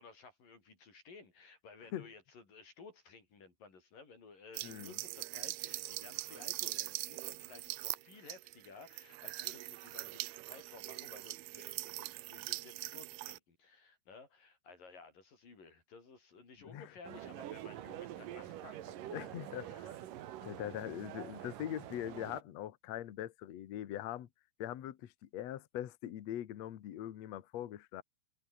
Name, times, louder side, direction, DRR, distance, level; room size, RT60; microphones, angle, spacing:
voice 1, 0.0-19.2, left 4 dB, 50° left, 7.9 m, -56 dB
sound 1, 4.5-13.4, right 20 dB, 90° right, 2.2 m, -42 dB
voice 2, 4.6-5.0 16.7-16.9 19.1-20.0 20.4-24.3 24.6-28.0, left 12 dB, 75° left, 1.5 m, -42 dB
sound 2, 17.0-22.4, right 12 dB, 65° right, 2.4 m, -46 dB
omnidirectional pair, 5.2 m